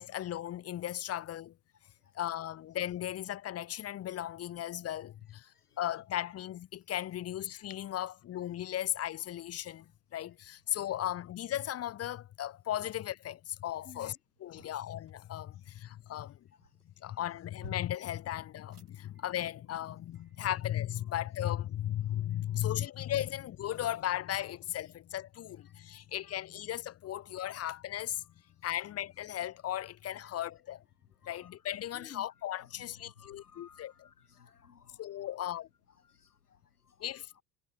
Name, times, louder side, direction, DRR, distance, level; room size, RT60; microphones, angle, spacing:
voice 1, 0.0-1.6 2.1-5.5 5.8-16.4 17.0-28.2 28.6-30.8 31.3-34.1 35.0-35.7 37.0-37.4, left 12 dB, 35° left, 1.2 m, -36 dB
voice 2, 5.4-5.8 7.7-7.9 8.4-8.5 9.8-9.9 10.7-10.8 13.8-14.1 14.6-14.7 15.6-15.7 16.6-16.7 17.0-17.2 19.0-19.1 20.4-20.5 22.1-22.2 25.7-26.4 27.2-27.3 30.2-30.3 31.2-31.6 31.8-32.3 32.6-35.3 36.0-37.1 37.3-37.4, left 7 dB, 80° left, 4.0 m, -58 dB
sound 1, 9.6-9.9 10.4-11.6 14.3-20.7, right 4 dB, 85° right, 5.9 m, -61 dB
figure-of-eight pair, 70°, 45 cm